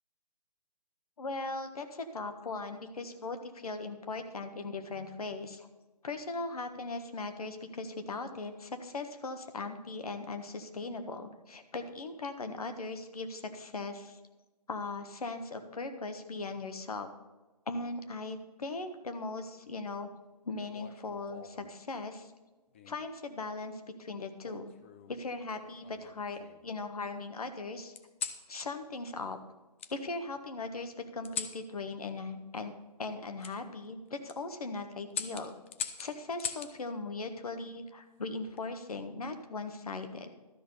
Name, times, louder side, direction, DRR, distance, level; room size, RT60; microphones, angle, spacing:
voice 1, 1.2-5.7 6.0-14.2 14.7-17.1 17.7-20.1 20.4-22.3 22.9-24.7 25.1-27.9 28.5-29.4 29.9-32.7 33.0-35.5 36.0-40.3, left 3 dB, 60° left, 7 dB, 1.4 m, -39 dB
sound 1, 20.6-21.7 22.7-23.1 24.4-25.2 25.8-26.7 27.9-28.4 29.8-29.9 31.2-31.6 33.4-33.5 34.1-34.4 35.1-36.7 38.2-38.6, left 7 dB, 20° left, 0.4 m, -41 dB
12.5 x 6.0 x 6.9 m, 1.1 s
figure-of-eight pair, 145°, 21 cm